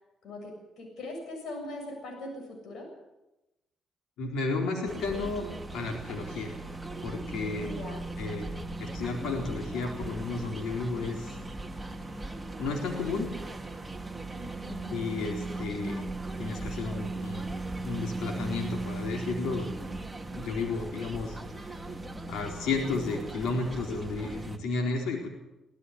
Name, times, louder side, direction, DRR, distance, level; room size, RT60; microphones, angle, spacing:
voice 1, 0.2-2.9 7.6-8.1 14.4-14.9, left 2 dB, 70° left, 2 dB, 7.2 m, -41 dB
voice 2, 4.2-5.5 5.7-6.6 7.0-7.7 8.2-8.5 8.8-11.4 12.6-13.3 14.9-16.0 16.4-17.5 17.8-19.7 20.3-21.4 22.3-25.3, left 3 dB, 85° left, 0 dB, 4.1 m, -32 dB
sound 1, 4.9-24.6, right 2 dB, 10° right, 1.9 m, -38 dB
18.5 x 15.0 x 9.5 m, 0.97 s
cardioid pair, 90°, 0 cm